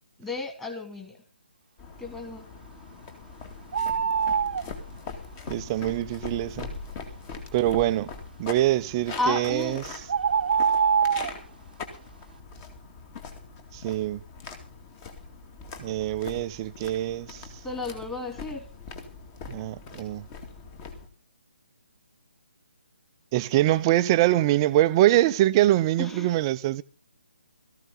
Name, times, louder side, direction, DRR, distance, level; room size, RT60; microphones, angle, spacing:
voice 1, 0.2-1.2 2.0-2.4 9.2-9.8 17.6-18.6 26.0-26.3, left 3 dB, 5° left, 2.7 m, -32 dB
sound 1, 1.8-21.1, left 4 dB, 25° left, 2.3 m, -42 dB
sound 2, 3.7-4.7 9.2-9.4 10.1-11.4, right 6 dB, 50° right, 1.0 m, -24 dB
voice 2, 5.5-6.7 7.5-8.1 8.4-9.8 13.7-14.2 15.8-17.5 19.5-20.3 23.3-26.8, right 14 dB, 25° right, 0.7 m, -24 dB
17.0 x 14.0 x 4.0 m
figure-of-eight pair, 145°, 6 cm